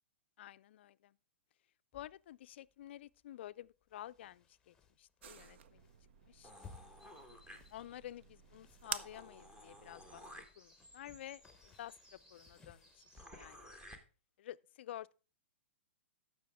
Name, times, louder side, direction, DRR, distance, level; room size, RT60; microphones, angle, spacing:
voice 1, 0.4-1.2 1.9-5.8 6.2-6.5 7.7-10.2 10.6-13.7 14.4-15.1, left 12 dB, 65° left, 0.4 m, -51 dB
sound 1, 1.9-13.2, left 5 dB, 10° left, 1.0 m, -63 dB
sound 2, 5.2-10.5, right 8 dB, 65° right, 0.7 m, -50 dB
sound 3, 6.4-8.1 8.5-8.6 8.8-14.0, left 1 dB, 10° right, 1.4 m, -56 dB
15.0 x 6.1 x 3.5 m
hypercardioid pair, 130°, 7 cm